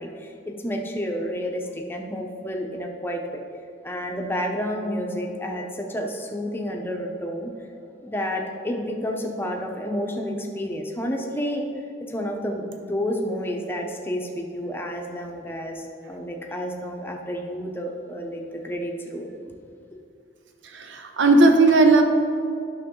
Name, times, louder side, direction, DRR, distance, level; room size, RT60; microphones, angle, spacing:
voice 1, 0.0-3.4 3.8-11.7 12.0-19.6, equal, 10° left, 1 dB, 0.7 m, -30 dB
voice 2, 20.6-22.0, right 2 dB, 75° right, 5 dB, 0.7 m, -16 dB
9.8 x 6.2 x 3.7 m, 2.6 s
head